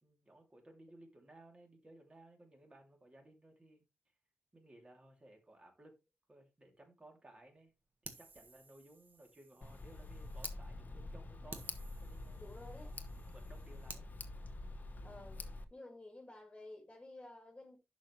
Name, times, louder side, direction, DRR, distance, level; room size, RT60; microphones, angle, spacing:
voice 1, 0.0-3.8 4.5-6.0 6.3-7.7 8.0-11.7 12.0-12.5 13.2-14.1, right 1 dB, 25° right, 2.8 m, -60 dB
Fire, 8.0-10.6 11.0-11.1 11.5-14.1, right 4 dB, 45° right, 1.5 m, -54 dB
Tick, 9.6-15.6, left 2 dB, 40° left, 0.9 m, -47 dB
voice 2, 12.4-12.9 15.0-15.4 15.7-17.8, left 2 dB, 15° left, 2.4 m, -52 dB
11.0 x 6.0 x 3.2 m
wide cardioid pair, 150°, 4 cm